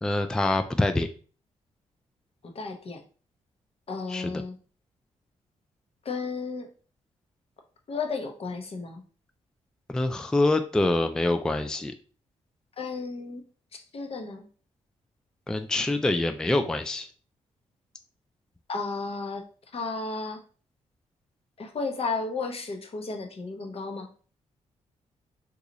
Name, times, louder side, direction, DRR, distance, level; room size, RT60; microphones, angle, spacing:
voice 1, 0.0-1.1 4.1-4.3 9.9-11.9 15.5-17.1, left 2 dB, 5° left, 7 dB, 0.3 m, -25 dB
voice 2, 2.5-3.0 3.9-4.6 6.0-6.7 7.9-9.0 12.8-13.4 13.7-14.5 18.7-19.4 19.7-20.4 21.6-24.1, left 4 dB, 50° left, 4 dB, 0.8 m, -33 dB
2.9 x 2.4 x 3.8 m, 0.39 s
cardioid pair, 80°, 13 cm